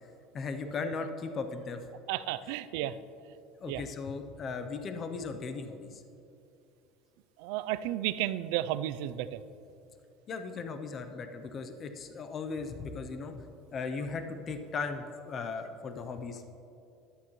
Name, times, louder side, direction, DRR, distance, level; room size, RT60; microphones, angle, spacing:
voice 1, 0.3-1.8 2.8-3.0 3.6-6.0 10.3-16.5, left 4 dB, 30° left, 7 dB, 0.6 m, -37 dB
voice 2, 2.1-2.9 3.7-3.8 7.4-9.4, right 13 dB, 75° right, 14 dB, 0.4 m, -32 dB
14.5 x 11.0 x 3.1 m, 2.7 s
cardioid pair, 150°, 0 cm